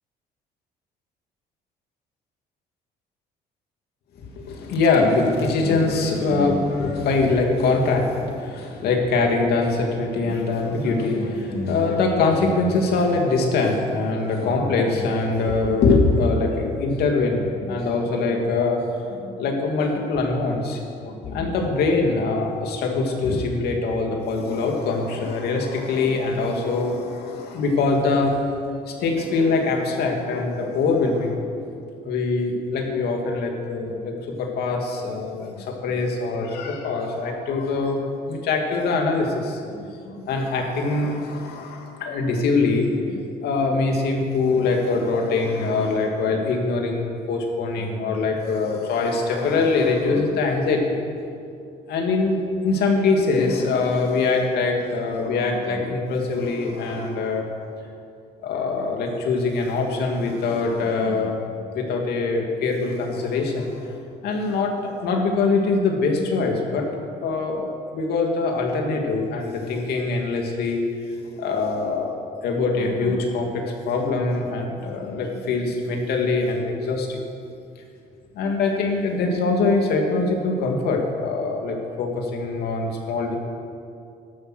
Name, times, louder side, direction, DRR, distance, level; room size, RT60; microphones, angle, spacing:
voice 1, 4.2-18.8 19.1-28.4 28.9-31.4 32.1-38.0 38.3-51.0 51.9-52.4 52.6-57.5 58.4-61.4 61.7-63.9 64.2-66.9 67.2-70.8 71.1-72.1 72.4-77.2 78.3-83.4, left 3 dB, 70° left, 1 dB, 2.7 m, -23 dB
14.0 x 12.5 x 6.4 m, 2.4 s
cardioid pair, 110°, 17 cm